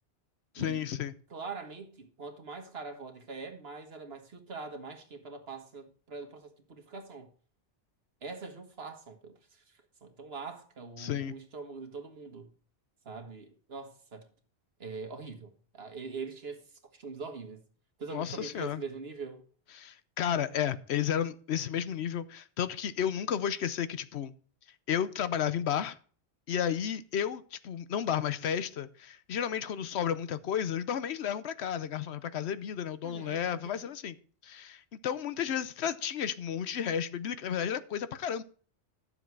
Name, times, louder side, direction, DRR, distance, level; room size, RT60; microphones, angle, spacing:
voice 1, 0.5-1.1 11.0-11.4 18.1-18.8 19.7-24.3 24.9-26.0 26.5-34.2 34.4-38.4, left 9 dB, 80° left, 1.0 m, -32 dB
voice 2, 1.3-7.3 8.2-12.5 13.0-14.3 14.8-17.6 18.0-19.4 33.0-33.9, right 4 dB, 70° right, 1.7 m, -43 dB
11.5 x 7.1 x 4.6 m
omnidirectional pair, 1.1 m